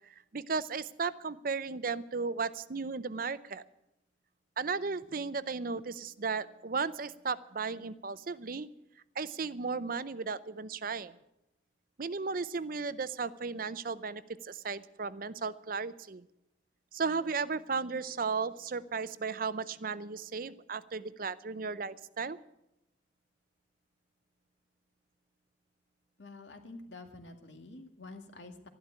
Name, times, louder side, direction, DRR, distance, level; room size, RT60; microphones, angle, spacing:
voice 1, 0.3-3.6 4.6-8.7 9.2-11.1 12.0-16.2 16.9-22.4, right 4 dB, 50° right, 15 dB, 0.6 m, -35 dB
voice 2, 26.2-28.7, left 2 dB, 75° left, 5 dB, 2.0 m, -48 dB
12.5 x 12.0 x 8.8 m, 0.86 s
head